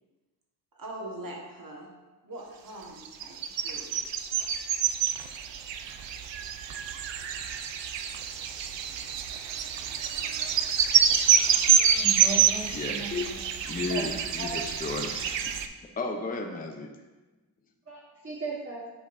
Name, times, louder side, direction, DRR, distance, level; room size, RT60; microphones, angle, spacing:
voice 1, 0.7-1.9 2.2-4.0, right 1 dB, 45° right, -1 dB, 1.5 m, -42 dB
sound 1, 3.0-15.7, right 8 dB, 70° right, 0.5 m, -27 dB
voice 2, 11.7-13.4 13.9-14.1 14.4-14.5 17.9-18.9, right 2 dB, 30° right, -8 dB, 1.4 m, -37 dB
voice 3, 12.7-13.2 13.6-15.6 16.0-16.9, left 3 dB, 20° left, 3 dB, 0.6 m, -34 dB
8.4 x 5.1 x 2.6 m, 1.2 s
wide cardioid pair, 100°, 46 cm